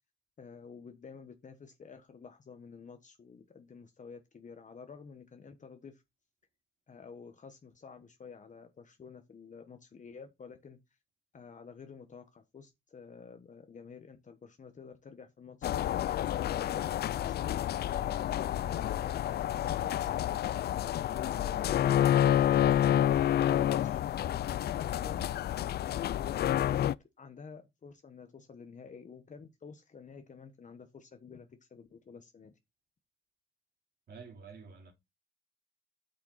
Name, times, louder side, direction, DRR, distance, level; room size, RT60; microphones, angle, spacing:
voice 1, 0.4-6.0 6.9-10.8 11.3-15.7 16.0-25.7 26.0-26.9 27.2-32.6, left 5 dB, 40° left, 1.3 m, -51 dB
sound 1, 15.6-26.9, left 11 dB, 55° left, 0.4 m, -29 dB
voice 2, 34.1-34.9, right 5 dB, 55° right, 3.3 m, -49 dB
8.6 x 5.8 x 4.1 m
cardioid pair, 90°, 20 cm